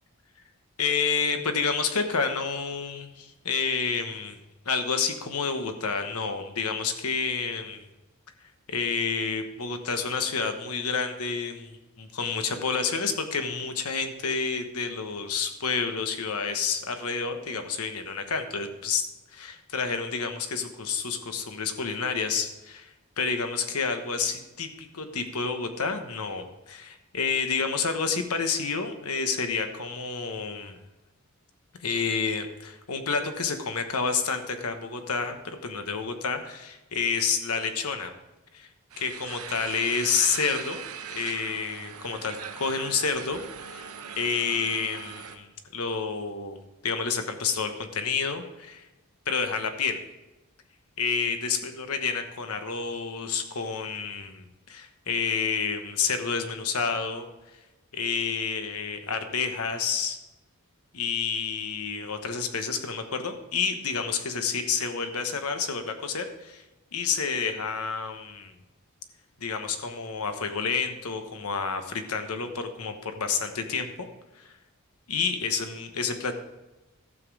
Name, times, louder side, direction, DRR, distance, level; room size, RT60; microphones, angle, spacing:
voice 1, 0.8-4.4 4.6-7.8 8.7-19.0 19.3-30.8 31.8-38.1 38.5-38.7 39.0-40.8 41.1-43.9 44.2-48.8 49.3-50.0 51.0-57.3 57.9-60.2 60.9-66.6 66.9-68.5 69.4-74.1 74.4-74.5 75.1-76.4, left 5 dB, 85° left, 7 dB, 1.1 m, -29 dB
sound 1, 38.9-45.4, right 7 dB, 85° right, 0.9 m, -40 dB
12.5 x 7.3 x 4.8 m, 1.0 s
head